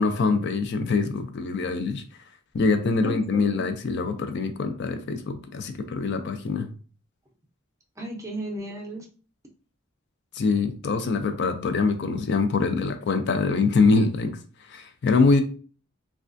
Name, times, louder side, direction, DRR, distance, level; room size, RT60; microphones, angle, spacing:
voice 1, 0.0-2.0 2.5-6.7 10.3-15.4, left 4 dB, 55° left, 7 dB, 0.4 m, -24 dB
voice 2, 3.0-3.7 8.0-9.1, right 1 dB, 15° right, 0 dB, 0.6 m, -35 dB
3.2 x 2.3 x 2.5 m, 0.38 s
head